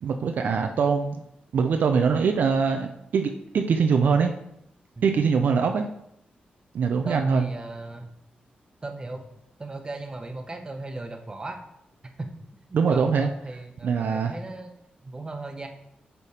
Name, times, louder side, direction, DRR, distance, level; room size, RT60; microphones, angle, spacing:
voice 1, 0.0-1.2 1.5-4.4 5.0-5.9 6.7-7.5 12.7-13.3 13.8-14.3, right 5 dB, 75° right, 5 dB, 0.5 m, -23 dB
voice 2, 7.0-8.1 8.8-9.2 9.6-11.6 12.2-12.3 12.7-14.7 15.0-15.7, right 2 dB, 25° right, 4 dB, 1.0 m, -37 dB
8.3 x 3.5 x 4.3 m, 0.78 s
cardioid pair, 90°, 3 cm